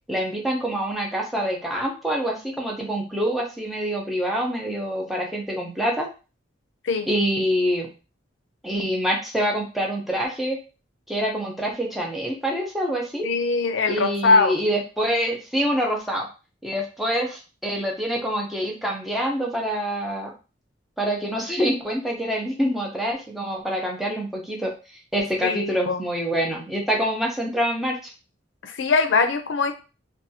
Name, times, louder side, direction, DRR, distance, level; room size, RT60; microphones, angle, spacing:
voice 1, 0.1-6.1 7.1-7.9 8.6-10.6 11.1-13.3 13.9-16.3 16.6-20.3 21.0-24.7 25.1-28.1, equal, ahead, -1 dB, 0.6 m, -26 dB
voice 2, 13.2-14.6 25.4-26.0 28.6-29.7, left 4 dB, 75° left, 7 dB, 0.5 m, -21 dB
2.6 x 2.3 x 2.7 m, 0.32 s
head